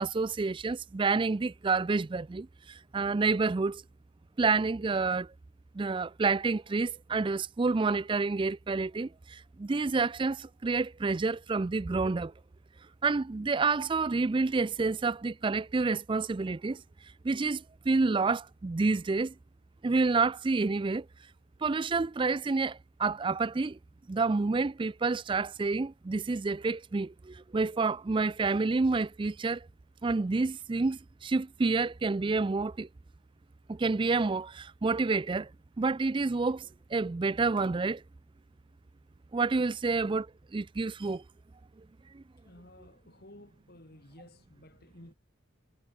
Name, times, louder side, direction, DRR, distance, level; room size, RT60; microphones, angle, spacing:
voice 1, 0.0-3.8 4.4-5.3 5.7-12.3 13.0-16.8 17.2-19.3 19.8-21.0 21.6-23.8 24.1-29.6 30.0-32.9 33.7-35.5 35.8-36.7 36.9-38.0 39.3-40.3 40.5-41.2 42.1-42.2, right 3 dB, 25° right, 0.4 m, -29 dB
voice 2, 42.4-45.1, left 1 dB, 50° left, 4.0 m, -54 dB
head